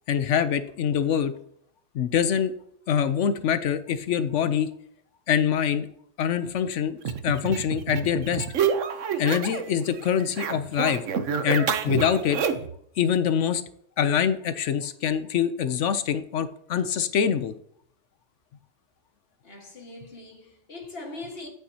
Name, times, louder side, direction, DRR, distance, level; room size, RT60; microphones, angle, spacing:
voice 1, 0.1-1.3 1.9-2.5 2.9-4.7 5.3-5.9 6.2-7.0 7.2-8.4 9.2-11.0 11.4-12.4 13.0-13.6 14.0-17.5, left 8 dB, 70° left, 0.9 m, -24 dB
sound 1, 7.0-9.7 10.0-12.8, right 7 dB, 75° right, 1.1 m, -28 dB
voice 2, 19.4-21.5, left 2 dB, 50° left, 1.8 m, -41 dB
9.0 x 8.8 x 2.8 m
omnidirectional pair, 1.3 m